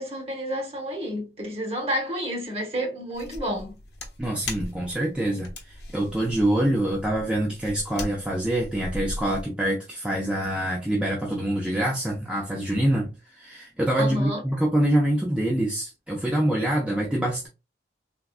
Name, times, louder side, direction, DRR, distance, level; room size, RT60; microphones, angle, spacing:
voice 1, 0.0-3.7 14.0-14.4, equal, 35° right, 1.1 m, -30 dB
sound 1, 3.1-9.5, left 2 dB, 60° left, 0.8 m, -39 dB
voice 2, 4.2-17.5, right 1 dB, 5° right, 0.4 m, -25 dB
3.5 x 2.2 x 2.4 m
head